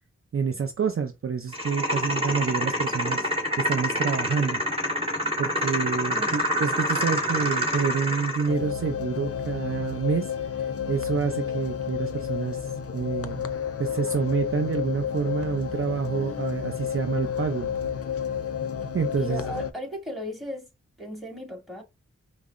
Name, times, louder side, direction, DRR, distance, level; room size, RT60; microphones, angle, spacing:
voice 1, 0.3-3.3 3.6-4.6 5.0-5.1 5.4-12.7 12.9-13.5 13.8-17.7 18.9-19.4, right 6 dB, 45° right, 0.5 m, -28 dB
sound 1, 1.5-8.5, equal, 20° right, 1.8 m, -27 dB
voice 2, 6.1-6.5 19.2-20.7 21.0-21.8, equal, ahead, 2.2 m, -36 dB
sound 2, 8.5-19.7, left 8 dB, 50° left, 0.5 m, -31 dB
5.4 x 2.0 x 2.4 m
cardioid pair, 55°, 30 cm